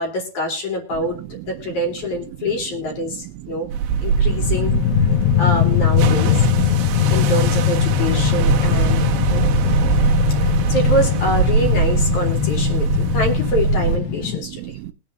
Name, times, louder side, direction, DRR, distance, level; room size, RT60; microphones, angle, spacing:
voice 1, 0.0-3.7 4.0-4.7 5.4-6.5 7.1-9.5 10.4-14.8, equal, 45° left, 3.6 m, -25 dB
sound 1, 3.7-14.0, right 7 dB, 70° right, 3.1 m, -22 dB
voice 2, 3.9-4.5 5.1-5.2 6.9-7.1 8.8-10.1 10.6-10.7 12.4-13.2 14.4-14.9, right 15 dB, 85° right, 3.3 m, -36 dB
sound 2, 4.2-14.4, left 15 dB, 80° left, 2.6 m, -20 dB
22.0 x 7.6 x 2.7 m
omnidirectional pair, 5.3 m